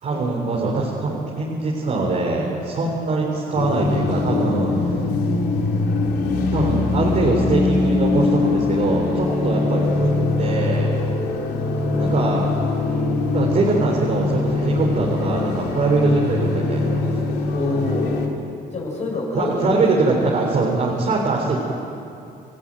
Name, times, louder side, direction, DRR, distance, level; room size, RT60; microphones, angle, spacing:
voice 1, 0.0-4.9 6.5-10.1 10.4-10.9 12.0-12.5 13.3-17.1 19.3-21.6, right 3 dB, 45° right, -2 dB, 4.3 m, -22 dB
sound 1, 3.5-18.3, left 3 dB, 70° left, 3.1 m, -22 dB
voice 2, 17.5-18.3 18.7-19.8, left 2 dB, 45° left, -2 dB, 6.9 m, -26 dB
28.0 x 14.5 x 9.2 m, 2.7 s
cardioid pair, 110°, 17 cm